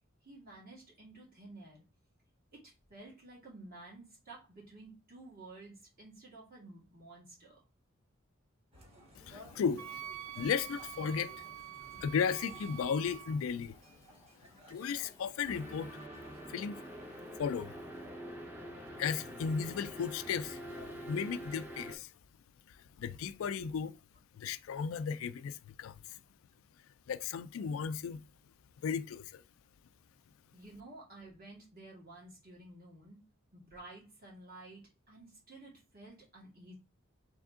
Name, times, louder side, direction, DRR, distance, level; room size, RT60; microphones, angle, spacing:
voice 1, 0.2-1.8 2.5-7.6 30.5-33.2 33.5-36.7, right 2 dB, 45° right, 2.2 m, -52 dB
sound 1, 8.7-16.4, equal, 30° right, 1.4 m, -57 dB
voice 2, 9.2-11.6 12.0-13.7 14.7-15.9 16.5-16.8 17.4-17.8 19.0-22.1 22.7-24.0 24.3-26.2 27.1-28.2 28.8-29.4, left 6 dB, 75° left, 0.3 m, -35 dB
Wind instrument woodwind instrument, 9.8-13.4, right 12 dB, 90° right, 0.4 m, -46 dB
sound 2, 15.5-21.9, equal, 10° right, 0.7 m, -45 dB
3.6 x 3.3 x 3.6 m
head